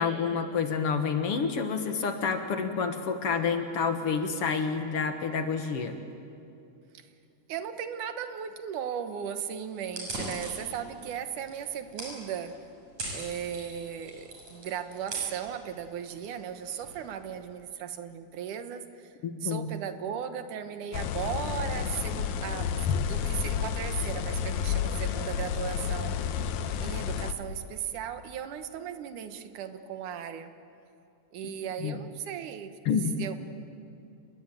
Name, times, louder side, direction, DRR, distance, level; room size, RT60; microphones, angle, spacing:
voice 1, 0.0-6.0 19.2-19.7 31.8-32.0 32.9-33.2, left 5 dB, 55° left, 7 dB, 2.0 m, -29 dB
voice 2, 7.5-12.6 13.1-19.1 19.4-22.7 23.1-26.4 26.8-30.5 31.3-32.8 33.2-33.4, right 8 dB, 85° right, 9 dB, 2.7 m, -37 dB
sound 1, 9.8-17.6, right 1 dB, 65° right, 8.5 m, -42 dB
sound 2, 20.9-27.3, left 8 dB, 75° left, 2.3 m, -30 dB
29.5 x 21.0 x 9.0 m, 2.6 s
omnidirectional pair, 3.5 m